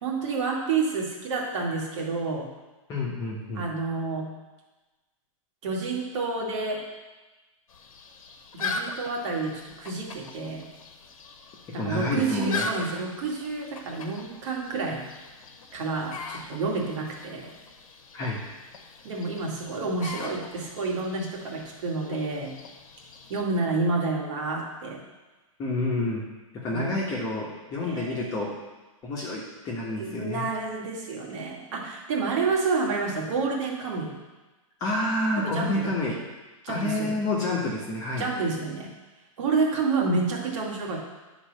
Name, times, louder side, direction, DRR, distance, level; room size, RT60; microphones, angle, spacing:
voice 1, 0.0-2.5 3.5-4.3 5.6-6.8 8.5-10.7 11.7-15.0 15.7-17.5 19.0-22.5 23.3-25.0 26.7-26.9 27.8-28.3 30.0-34.1 35.4-35.9 36.6-37.2 38.2-38.9 39.4-41.0, right 4 dB, 55° right, -2 dB, 2.4 m, -29 dB
voice 2, 2.9-3.7 11.8-12.9 18.1-18.4 25.6-26.2 26.5-28.5 29.0-30.5 34.8-36.2 36.7-38.3, left 2 dB, 20° left, -4 dB, 1.4 m, -29 dB
sound 1, 7.7-23.4, left 4 dB, 75° left, 1.3 m, -40 dB
9.9 x 4.3 x 6.6 m, 1.2 s
hypercardioid pair, 160°, 18 cm